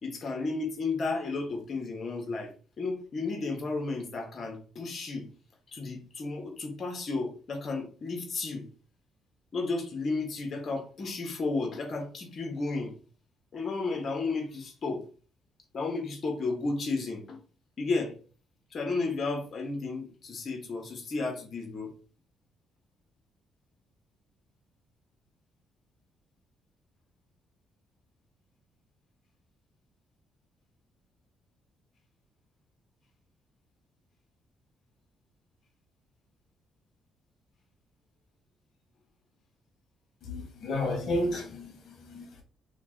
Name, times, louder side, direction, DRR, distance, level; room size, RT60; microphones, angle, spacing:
voice 1, 0.0-2.5 2.8-5.3 5.7-8.7 9.5-12.9 13.5-15.1 15.7-17.4 17.8-18.2 18.7-21.9, left 3 dB, 50° left, 1.2 m, -33 dB
voice 2, 40.3-42.4, left 1 dB, 65° left, 1.4 m, -32 dB
2.9 x 2.9 x 3.8 m
cardioid pair, 90°, 0 cm